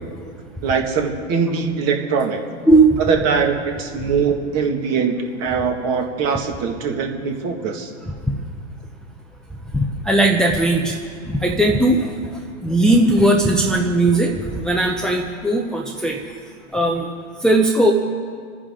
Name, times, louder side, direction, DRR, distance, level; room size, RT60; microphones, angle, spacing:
voice 1, 0.6-2.4 3.0-7.9, right 5 dB, 40° right, 3 dB, 1.9 m, -22 dB
voice 2, 2.7-3.0 9.7-11.0 11.2-16.2 16.7-17.1 17.4-17.9, right 2 dB, ahead, 0 dB, 0.7 m, -18 dB
28.5 x 9.9 x 3.8 m, 2.1 s
hypercardioid pair, 120°, 41 cm